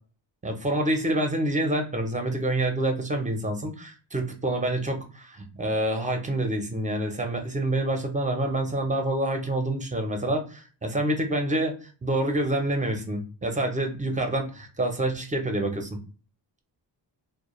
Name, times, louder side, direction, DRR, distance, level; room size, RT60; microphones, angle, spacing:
voice 1, 0.4-11.7 12.0-16.0, right 1 dB, 20° right, 4 dB, 0.5 m, -27 dB
2.2 x 2.1 x 2.9 m, 0.39 s
cardioid pair, 100°, 44 cm